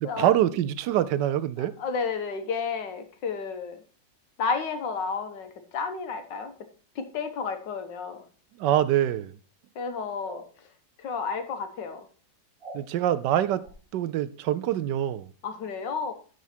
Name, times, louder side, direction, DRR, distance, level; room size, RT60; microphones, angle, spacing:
voice 1, 0.0-1.7 8.6-9.3 12.7-13.6 13.9-15.3, right 11 dB, 75° right, 1.2 m, -25 dB
voice 2, 1.6-3.8 4.4-6.7 6.9-8.2 9.7-10.7 11.0-12.1 15.4-16.1, left 5 dB, 75° left, 1.8 m, -32 dB
sound 1, 10.2-10.5 12.6-12.8 13.6-13.8, right 2 dB, 50° right, 2.4 m, -42 dB
12.5 x 4.8 x 4.3 m
omnidirectional pair, 1.9 m